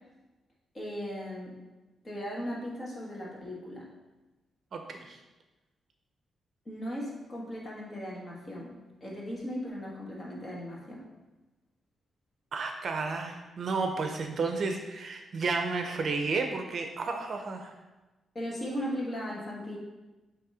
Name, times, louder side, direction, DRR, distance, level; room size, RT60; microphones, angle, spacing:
voice 1, 0.7-1.5 2.0-3.9 6.7-8.8 9.0-11.1 18.4-19.8, equal, 25° left, -4 dB, 1.8 m, -37 dB
voice 2, 4.7-5.2 12.5-17.7, right 4 dB, 50° right, 4 dB, 0.7 m, -32 dB
7.7 x 3.1 x 4.9 m, 1.1 s
cardioid pair, 125°, 0 cm